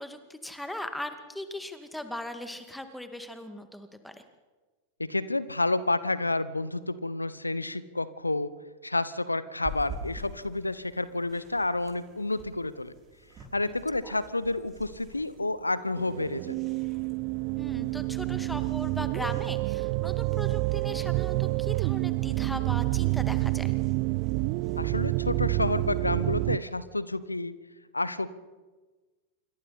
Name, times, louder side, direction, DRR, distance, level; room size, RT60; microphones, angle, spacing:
voice 1, 0.0-4.2 13.6-13.7 17.6-23.7, left 1 dB, 5° left, 8 dB, 2.2 m, -39 dB
voice 2, 5.0-8.5 8.8-12.9 13.5-16.6 24.8-27.5 27.9-28.3, left 2 dB, 85° left, 17 dB, 1.0 m, -30 dB
sound 1, 9.6-26.0, right 1 dB, 30° right, 6.8 m, -49 dB
sound 2, 16.0-26.6, right 22 dB, 45° right, 0.7 m, -28 dB
27.5 x 24.0 x 4.3 m, 1.3 s
figure-of-eight pair, 90°, 0 cm